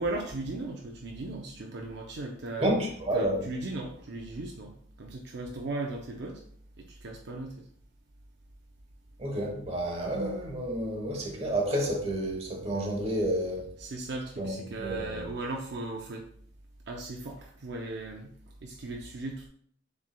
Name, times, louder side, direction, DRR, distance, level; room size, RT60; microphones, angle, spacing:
voice 1, 0.0-2.7 3.1-6.4 6.8-7.7 13.8-16.3 16.9-18.3 18.6-19.5, right 2 dB, 60° right, 0.5 m, -37 dB
voice 2, 2.6-3.5 9.2-13.7 14.4-15.2, right 1 dB, 35° right, 1.0 m, -30 dB
7.2 x 3.3 x 2.2 m
head